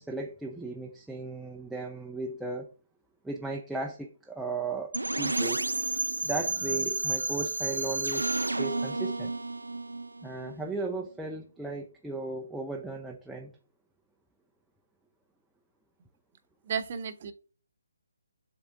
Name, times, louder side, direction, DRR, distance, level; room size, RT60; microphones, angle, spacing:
voice 1, 0.0-2.7 3.2-5.7 6.2-9.3 10.2-13.5, right 3 dB, ahead, 0.5 m, -36 dB
sound 1, 4.9-10.7, right 2 dB, 80° right, 0.5 m, -31 dB
voice 2, 16.6-17.3, right 6 dB, 40° right, 0.8 m, -33 dB
7.6 x 3.4 x 3.7 m
figure-of-eight pair, 145°, 0 cm